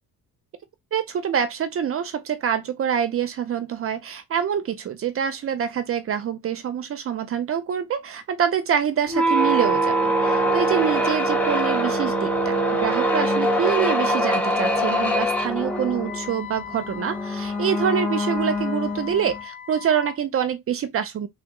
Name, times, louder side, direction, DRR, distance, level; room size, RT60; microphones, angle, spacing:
voice 1, 0.9-21.3, right 8 dB, 40° right, 0.4 m, -26 dB
sound 1, 9.1-19.4, right 1 dB, 5° left, 0.6 m, -23 dB
Wind instrument woodwind instrument, 15.6-20.2, left 11 dB, 80° left, 2.3 m, -38 dB
3.3 x 2.0 x 3.6 m
cardioid pair, 165°, 35 cm